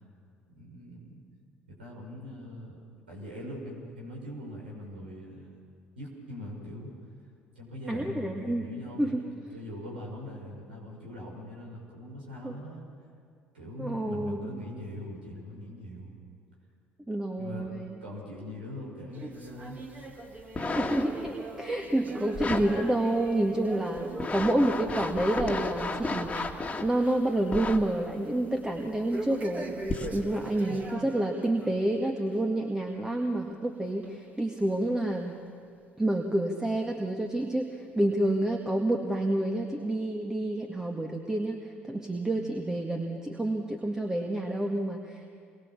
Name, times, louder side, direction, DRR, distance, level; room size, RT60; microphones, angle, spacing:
voice 1, 0.5-1.2 1.7-2.8 3.1-5.5 6.0-6.9 7.6-12.8 13.5-16.1 17.4-17.7 18.0-19.8 30.7-30.8, left 1 dB, 75° right, -2 dB, 6.1 m, -42 dB
voice 2, 7.9-8.6 9.0-9.3 12.4-12.6 13.8-14.5 17.1-18.0 20.8-26.5 26.8-29.8 30.1-35.3 36.0-41.6 41.9-45.3, right 1 dB, 10° right, 2 dB, 2.0 m, -29 dB
sound 1, 19.1-26.7 27.0-27.3 27.7-27.8 29.1-31.8 32.2-32.4 33.1-33.2 34.0-34.1 34.9-35.0, right 2 dB, 25° right, 3.6 m, -42 dB
sound 2, 20.4-21.3 22.3-22.7 23.3-23.4 24.0-26.9 27.5-27.8 28.8-28.9 29.8-30.2 30.8-30.9, left 3 dB, 20° left, 2.3 m, -33 dB
28.5 x 23.0 x 7.2 m, 2.4 s
figure-of-eight pair, 55°, 6 cm